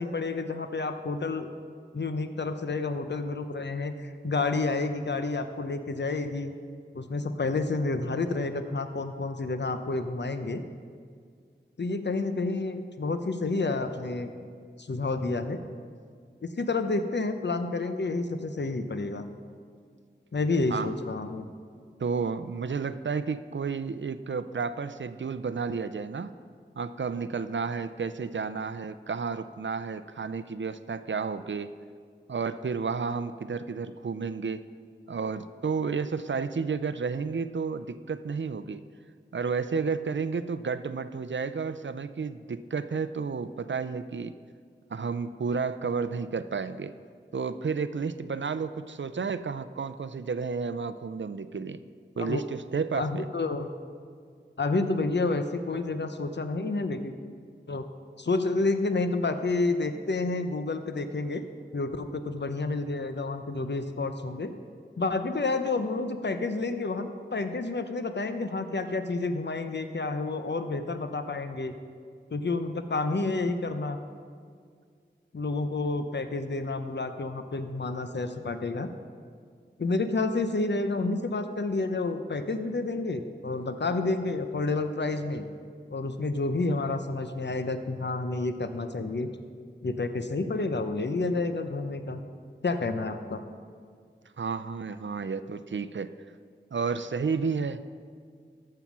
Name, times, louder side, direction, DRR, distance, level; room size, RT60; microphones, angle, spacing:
voice 1, 0.0-1.5 1.9-6.5 6.9-10.6 11.8-14.3 14.8-15.6 16.4-19.2 20.3-21.5 52.2-52.4 52.9-53.7 54.6-57.1 57.7-57.9 58.2-61.4 61.7-64.5 65.0-71.8 72.3-74.0 75.3-78.9 79.8-85.5 85.9-89.3 89.8-92.2 92.6-93.4, left 3 dB, 65° left, 8 dB, 0.7 m, -29 dB
voice 2, 22.0-26.3 26.8-31.8 32.3-34.6 35.1-38.8 39.3-44.4 44.9-46.9 47.3-51.8 52.2-53.3 94.4-96.1 96.7-97.8, right 5 dB, 75° right, 13 dB, 0.4 m, -31 dB
14.0 x 5.7 x 6.1 m, 2.1 s
wide cardioid pair, 45°, 19 cm